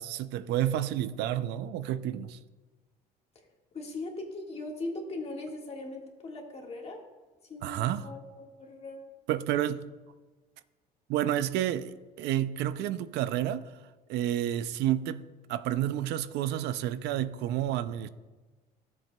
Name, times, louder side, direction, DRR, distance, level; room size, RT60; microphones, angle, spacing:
voice 1, 0.0-2.4 7.6-8.0 9.3-9.9 11.1-13.7 14.1-18.1, right 12 dB, 80° right, 0.4 m, -30 dB
voice 2, 3.7-7.0 7.5-9.0, left 2 dB, 35° left, 1.7 m, -39 dB
14.0 x 7.5 x 2.2 m
cardioid pair, 110°, 17 cm